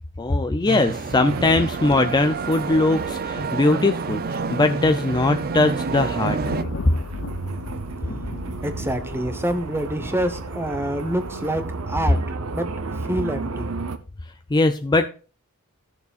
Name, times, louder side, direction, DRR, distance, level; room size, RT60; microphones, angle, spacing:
voice 1, 0.2-6.4 14.5-15.1, left 2 dB, 20° left, 8 dB, 0.4 m, -20 dB
sound 1, 0.7-6.6, right 4 dB, 45° right, 0.5 m, -28 dB
sound 2, 1.3-14.0, right 3 dB, 80° right, 0.8 m, -34 dB
Thunder, 6.2-11.6, left 3 dB, 60° left, 0.7 m, -37 dB
voice 2, 8.6-13.7, right 1 dB, 10° right, 8 dB, 0.9 m, -27 dB
15.0 x 6.7 x 2.4 m, 0.36 s
head